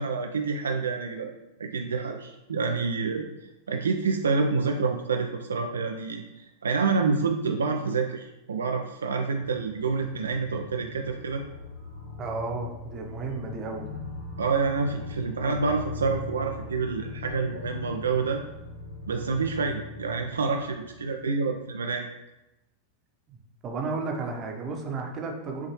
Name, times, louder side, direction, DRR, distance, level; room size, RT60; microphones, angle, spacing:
voice 1, 0.0-1.3 1.6-3.3 3.7-11.4 14.4-18.4 19.1-22.1, right 4 dB, 70° right, 3 dB, 0.3 m, -28 dB
sound 1, 9.2-21.6, left 3 dB, 60° left, 1.0 m, -41 dB
voice 2, 12.2-13.9 23.3-23.4 23.6-25.7, right 3 dB, 30° right, 1 dB, 0.8 m, -33 dB
5.6 x 2.8 x 3.0 m, 0.94 s
figure-of-eight pair, 90°, 0 cm